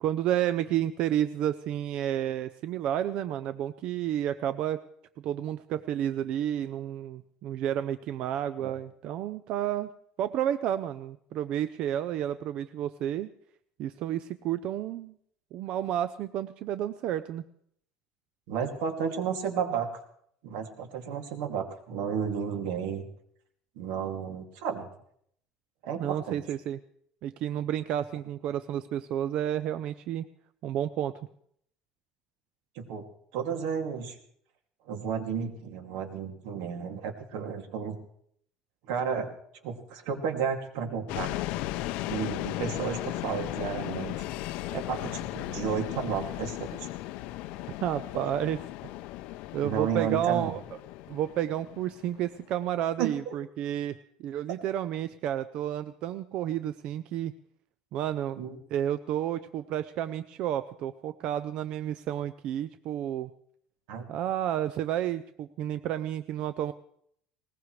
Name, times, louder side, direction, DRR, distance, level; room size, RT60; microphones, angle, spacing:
voice 1, 0.0-4.8 5.2-9.9 10.2-13.3 13.8-15.1 15.5-17.4 26.0-26.8 27.2-30.3 30.6-31.1 47.8-48.6 49.5-50.6 51.1-57.3 57.9-58.4 58.7-63.3 64.1-66.7, right 11 dB, 55° right, 12 dB, 0.5 m, -31 dB
voice 2, 18.5-19.9 20.4-23.1 23.8-24.9 25.8-26.4 32.8-33.0 33.3-34.1 34.9-38.0 38.9-39.3 39.6-41.3 42.1-44.1 44.7-46.8 49.6-50.5 53.0-53.3 58.4-58.6 63.9-64.0, right 7 dB, 85° right, 4 dB, 2.5 m, -32 dB
sound 1, 41.1-52.5, left 16 dB, 70° left, 0.5 m, -36 dB
20.0 x 19.5 x 3.2 m, 0.68 s
cardioid pair, 160°, 2 cm